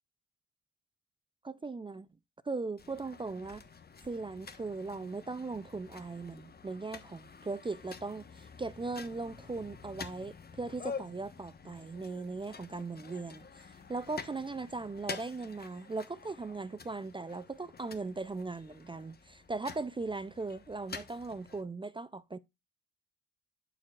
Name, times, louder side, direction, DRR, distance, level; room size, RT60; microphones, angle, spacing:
voice 1, 1.4-2.1 2.4-3.6 4.0-22.4, right 3 dB, 15° right, 0.4 m, -39 dB
sound 1, 2.8-21.6, left 5 dB, 30° left, 1.2 m, -48 dB
11.5 x 4.5 x 2.4 m
cardioid pair, 90°, 30 cm